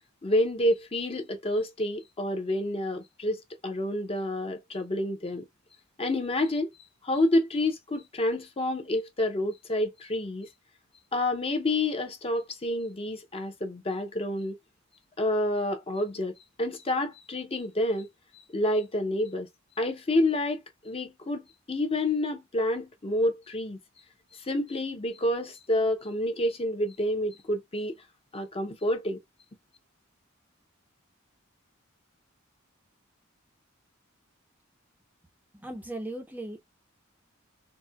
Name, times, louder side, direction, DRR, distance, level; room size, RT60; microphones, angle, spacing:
voice 1, 0.2-5.4 6.0-6.7 7.0-10.5 11.1-14.6 15.2-18.1 18.3-19.5 19.8-23.8 24.3-28.0 28.3-29.2, left 1 dB, 30° left, 0.6 m, -28 dB
voice 2, 35.6-36.6, right 1 dB, 10° right, 0.5 m, -37 dB
4.1 x 2.1 x 2.2 m
head